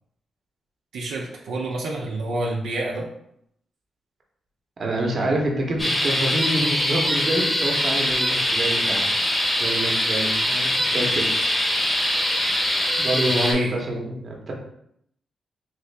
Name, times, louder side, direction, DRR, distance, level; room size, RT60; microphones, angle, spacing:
voice 1, 0.9-3.1 13.3-13.8, right 2 dB, 90° right, -2 dB, 0.5 m, -28 dB
voice 2, 4.8-9.0 9.6-11.5 13.0-14.5, right 1 dB, 45° right, 0 dB, 0.9 m, -27 dB
sound 1, 5.8-13.5, equal, 10° left, 0.8 m, -23 dB
3.2 x 2.8 x 3.3 m, 0.74 s
cardioid pair, 105°, 0 cm